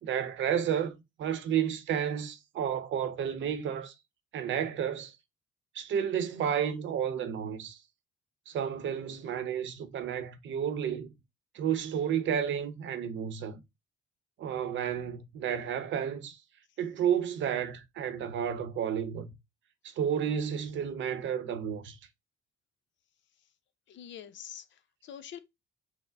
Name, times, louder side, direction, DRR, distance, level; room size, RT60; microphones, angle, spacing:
voice 1, 0.0-3.9 4.3-5.2 5.7-7.8 8.5-11.1 11.5-13.6 14.4-16.4 16.8-19.3 19.8-22.0, right 8 dB, 70° right, 0.7 m, -31 dB
voice 2, 23.9-25.4, left 9 dB, 70° left, 0.6 m, -45 dB
5.6 x 2.1 x 3.4 m
cardioid pair, 90°, 20 cm